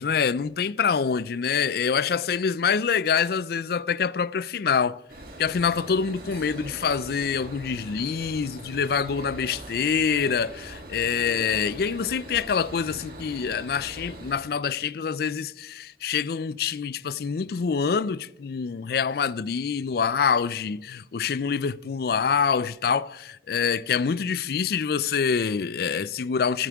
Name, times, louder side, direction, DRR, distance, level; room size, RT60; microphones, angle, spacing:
voice 1, 0.0-5.0 5.4-26.7, left 6 dB, 55° left, 0.4 m, -26 dB
sound 1, 5.1-14.4, right 1 dB, 55° right, 2.7 m, -42 dB
14.0 x 14.0 x 3.5 m
head